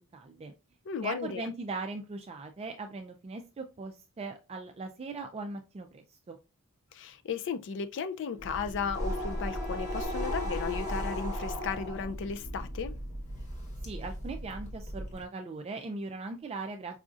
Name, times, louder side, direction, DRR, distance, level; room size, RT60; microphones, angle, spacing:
voice 1, 0.1-0.5 1.0-6.4 13.8-17.0, right 3 dB, 25° right, 0.3 m, -39 dB
voice 2, 0.9-1.5 6.9-12.9, left 6 dB, 55° left, 0.4 m, -35 dB
Wind instrument woodwind instrument, 8.1-13.2, left 9 dB, 90° left, 2.2 m, -48 dB
sound 1, 8.4-15.2, equal, 35° left, 1.1 m, -36 dB
4.8 x 2.5 x 2.4 m
head